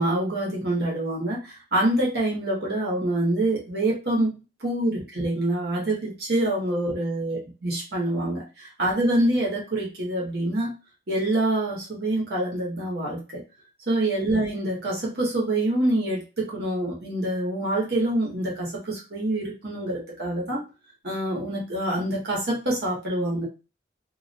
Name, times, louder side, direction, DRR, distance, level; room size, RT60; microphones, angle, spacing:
voice 1, 0.0-4.3 4.6-10.7 11.1-13.4 13.9-20.6 21.0-23.5, right 1 dB, 55° right, -4 dB, 0.9 m, -26 dB
2.4 x 2.1 x 2.6 m, 0.31 s
head